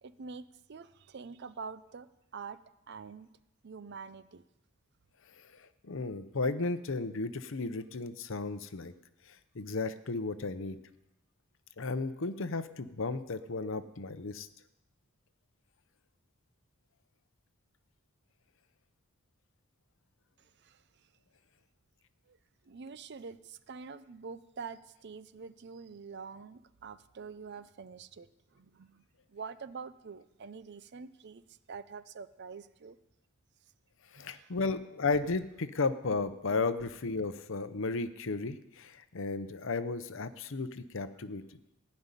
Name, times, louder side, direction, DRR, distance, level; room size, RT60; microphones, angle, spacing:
voice 1, 0.0-2.6 2.9-3.3 3.6-4.4 20.4-21.1 22.3-22.4 22.6-29.0 29.3-33.0 34.1-34.6, right 5 dB, 55° right, 15 dB, 0.5 m, -46 dB
voice 2, 5.4-8.9 9.3-10.8 11.8-14.5 34.1-41.4, left 3 dB, 65° left, 12 dB, 0.8 m, -34 dB
16.0 x 5.4 x 9.8 m, 0.89 s
head